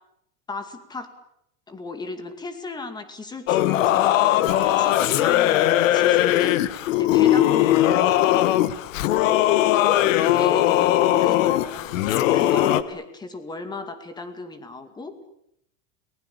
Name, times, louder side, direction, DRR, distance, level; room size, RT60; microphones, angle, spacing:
voice 1, 0.5-1.1 1.7-8.6 10.0-15.3, left 3 dB, 10° left, 9 dB, 2.3 m, -35 dB
Singing / Musical instrument, 3.5-12.8, left 13 dB, 70° left, 1.6 m, -19 dB
sound 1, 4.5-7.0, right 3 dB, 10° right, 6.9 m, -48 dB
29.5 x 20.5 x 8.6 m, 0.75 s
supercardioid pair, 170°, 39 cm